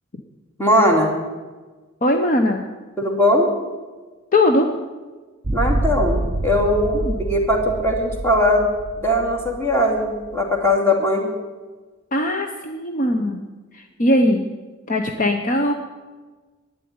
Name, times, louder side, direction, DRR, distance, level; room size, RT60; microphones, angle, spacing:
voice 1, 0.6-1.2 3.0-3.5 5.5-8.7 9.0-11.3, left 1 dB, 10° left, 0 dB, 2.6 m, -19 dB
voice 2, 2.0-2.7 4.3-4.7 6.9-7.1 12.1-13.4 13.7-14.5 14.9-15.7, left 1 dB, 40° left, 4 dB, 1.0 m, -20 dB
sound 1, 5.4-10.7, right 2 dB, 20° right, 0.4 m, -26 dB
12.0 x 10.0 x 9.5 m, 1.3 s
head